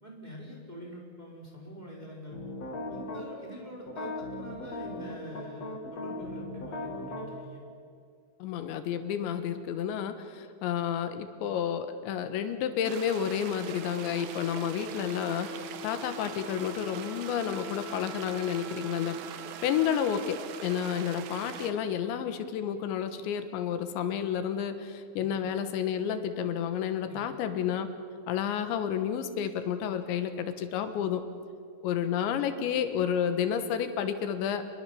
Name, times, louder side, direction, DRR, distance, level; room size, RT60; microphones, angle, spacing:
voice 1, 0.0-2.5 2.9-7.7 25.2-25.3 27.0-27.4, equal, 10° right, -2 dB, 3.7 m, -45 dB
sound 1, 2.3-3.2 3.9-7.3, left 2 dB, 40° left, 3.4 m, -37 dB
voice 2, 8.4-19.2 19.6-27.9 28.3-31.2 31.8-34.6, left 8 dB, 85° left, 9 dB, 3.6 m, -31 dB
sound 2, 12.8-21.7, right 9 dB, 75° right, 3.5 m, -43 dB
Wind instrument woodwind instrument, 13.6-22.3, left 1 dB, 35° right, 4.5 m, -45 dB
28.5 x 21.5 x 7.1 m, 2.2 s
omnidirectional pair, 5.1 m